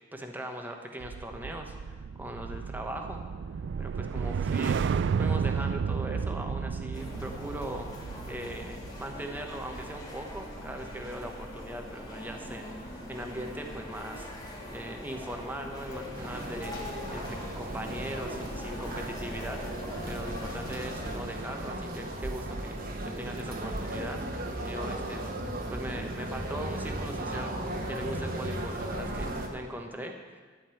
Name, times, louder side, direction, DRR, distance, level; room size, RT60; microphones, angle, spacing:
voice 1, 0.1-3.2 3.8-16.8 17.1-24.2 24.6-27.5 27.9-30.4, right 1 dB, 10° right, 3 dB, 1.1 m, -40 dB
sound 1, 1.0-11.4 11.8-12.1, right 6 dB, 65° right, 0.3 m, -32 dB
sound 2, 6.9-21.2, left 1 dB, 20° left, 1.9 m, -41 dB
sound 3, 16.1-29.5, right 1 dB, 50° right, 1.4 m, -36 dB
12.0 x 5.3 x 9.0 m, 1.4 s
head